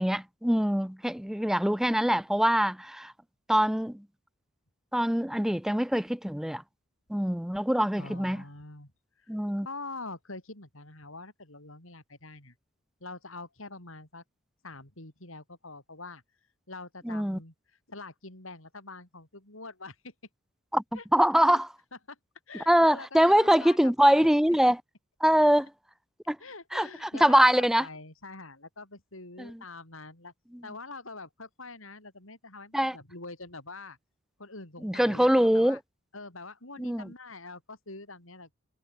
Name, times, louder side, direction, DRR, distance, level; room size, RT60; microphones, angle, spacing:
voice 1, 0.0-3.1 3.5-4.0 4.9-6.6 7.1-8.4 9.3-9.7 17.0-17.4 20.7-21.7 22.7-24.8 25.2-25.7 26.3-26.4 26.7-27.9 29.4-29.6 30.5-30.6 32.7-33.0 34.8-35.8 36.8-37.1, equal, ahead, 0.5 m, -24 dB
voice 2, 8.0-8.9 9.6-12.5 13.0-14.2 14.6-16.2 16.7-17.5 17.9-20.1 20.9-21.0 22.1-22.2 22.5-24.3 25.3-25.5 26.4-30.3 30.6-34.0 34.4-35.8 36.1-38.5, left 3 dB, 70° left, 6.7 m, -44 dB
head